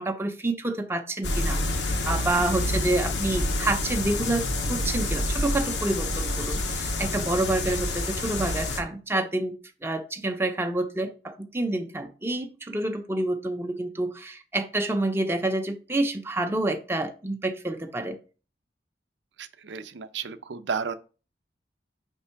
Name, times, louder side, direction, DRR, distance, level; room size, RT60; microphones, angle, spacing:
voice 1, 0.0-4.4 4.7-9.6 9.8-18.2, right 2 dB, 15° right, 0.6 m, -28 dB
sound 1, 1.2-8.8, left 2 dB, 85° left, 1.0 m, -28 dB
voice 2, 19.4-20.9, right 6 dB, 90° right, 0.6 m, -33 dB
5.4 x 3.4 x 5.7 m
head